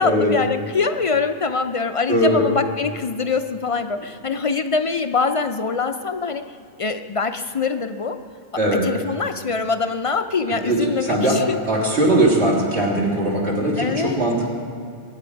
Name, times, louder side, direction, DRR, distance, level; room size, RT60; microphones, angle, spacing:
voice 1, 0.0-6.4 6.8-8.2 8.8-11.6 13.8-14.2, left 4 dB, 50° left, 8 dB, 0.4 m, -23 dB
voice 2, 2.1-2.4 8.6-8.8 10.5-11.4 11.7-14.5, right 1 dB, 80° right, -5 dB, 3.6 m, -20 dB
23.0 x 9.2 x 5.2 m, 2.2 s
omnidirectional pair, 1.1 m